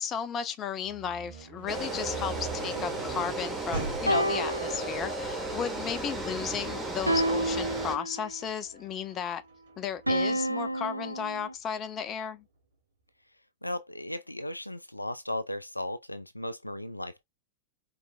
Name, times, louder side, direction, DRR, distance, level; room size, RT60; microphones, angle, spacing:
voice 1, 0.0-9.4 9.8-12.5, left 8 dB, 25° left, 0.7 m, -34 dB
sound 1, 0.8-10.6, right 4 dB, 55° right, 2.0 m, -43 dB
sound 2, 1.7-8.0, right 2 dB, 10° right, 1.2 m, -35 dB
sound 3, 1.7-3.5 4.1-5.5 7.1-8.5 10.1-11.5, right 1 dB, 90° right, 0.4 m, -31 dB
voice 2, 13.6-17.2, left 1 dB, 85° left, 0.4 m, -36 dB
4.4 x 3.3 x 2.2 m
figure-of-eight pair, 95°, 0 cm